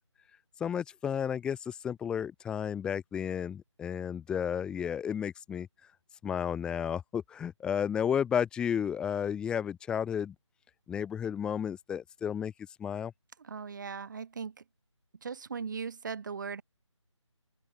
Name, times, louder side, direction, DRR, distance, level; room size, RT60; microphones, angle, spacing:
voice 1, 0.6-5.7 6.2-10.3 10.9-12.5 12.8-13.1, left 8 dB, 5° left, 7.6 m, -32 dB
voice 2, 13.4-14.6 15.2-16.6, right 6 dB, 40° right, 7.9 m, -38 dB
open air
figure-of-eight pair, 165°, 16 cm